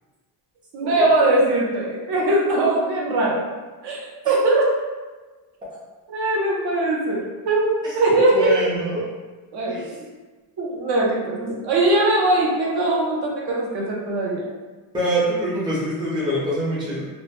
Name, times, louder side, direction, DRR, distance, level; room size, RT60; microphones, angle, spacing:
voice 1, 0.7-3.4 3.8-4.0 4.3-4.7 6.1-8.5 8.9-9.0 9.5-10.1 10.6-14.4, right 2 dB, 60° right, -3 dB, 0.7 m, -21 dB
voice 2, 8.3-9.1 9.7-9.8 14.9-17.1, equal, 10° right, -8 dB, 0.5 m, -24 dB
2.1 x 2.0 x 2.9 m, 1.3 s
cardioid pair, 150°, 45 cm